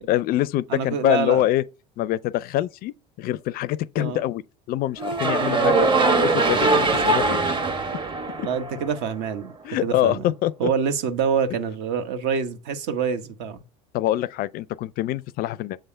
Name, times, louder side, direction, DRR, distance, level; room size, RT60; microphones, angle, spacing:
voice 1, 0.0-1.6 2.0-4.4 4.7-5.9 6.2-7.6 8.4-8.5 9.6-10.7 13.9-15.8, left 14 dB, 50° left, 0.4 m, -25 dB
voice 2, 0.7-1.4 4.0-4.2 5.4-6.2 7.0-7.2 8.4-9.5 9.8-10.2 10.6-13.6, right 6 dB, 60° right, 1.1 m, -26 dB
sound 1, 5.0-9.2, right 3 dB, 25° right, 1.1 m, -22 dB
7.6 x 3.4 x 4.4 m
hypercardioid pair, 75°, 20 cm